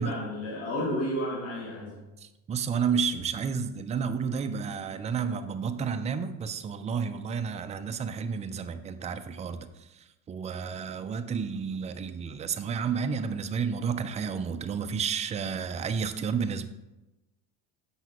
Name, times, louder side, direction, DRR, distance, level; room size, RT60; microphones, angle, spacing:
voice 1, 0.0-2.0, equal, 35° left, -6 dB, 2.1 m, -32 dB
voice 2, 2.2-16.7, right 6 dB, 20° right, 9 dB, 0.4 m, -31 dB
7.8 x 5.9 x 3.0 m, 1.0 s
supercardioid pair, 105°, 39 cm